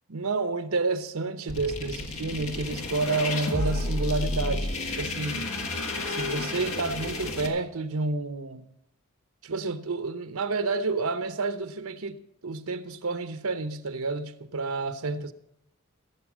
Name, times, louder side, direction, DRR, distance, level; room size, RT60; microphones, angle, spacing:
voice 1, 0.1-5.5 6.1-8.6 9.4-15.3, right 3 dB, 90° right, 0.9 m, -30 dB
sound 1, 1.5-7.5, left 2 dB, 75° left, 1.8 m, -31 dB
16.0 x 8.1 x 6.2 m
head